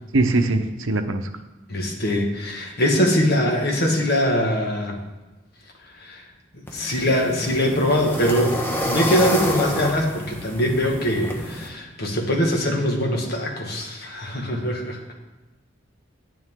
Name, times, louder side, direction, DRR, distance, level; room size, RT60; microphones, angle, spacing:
voice 1, 0.1-1.2, right 2 dB, 80° right, 7 dB, 0.9 m, -21 dB
voice 2, 1.7-5.0 6.0-6.2 6.7-15.1, equal, 50° left, 1 dB, 1.6 m, -22 dB
sound 1, 6.7-11.7, equal, 10° left, 1.1 m, -28 dB
10.0 x 9.7 x 3.7 m, 1.1 s
head